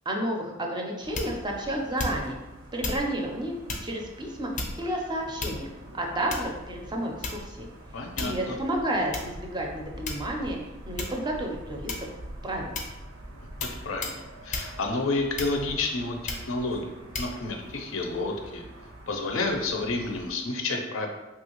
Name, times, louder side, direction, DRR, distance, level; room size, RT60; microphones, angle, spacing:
voice 1, 0.1-2.4 2.7-3.6 3.8-5.7 5.9-7.7 8.2-10.6 10.9-12.1 12.4-12.8, right 1 dB, 20° right, 1 dB, 0.4 m, -31 dB
sound 1, 1.0-20.4, right 1 dB, 85° right, 0.6 m, -45 dB
sound 2, 1.1-1.5 2.0-2.4 2.8-3.1 3.7-3.9 4.5-4.9 5.4-5.8 6.3-6.6 7.2-7.6 8.2-8.5 9.1-9.3 10.0-10.5 11.0-11.2 11.9-12.2 12.7-13.0 13.6-13.8 14.0-14.2 14.5-14.7 15.4-15.8 16.3-16.5 17.1-17.3, left 2 dB, 40° left, 0.4 m, -33 dB
voice 2, 7.9-8.6 13.8-16.9 17.2-18.6 19.1-21.1, left 3 dB, 90° left, 3 dB, 0.5 m, -30 dB
3.0 x 2.4 x 3.0 m, 1.0 s
head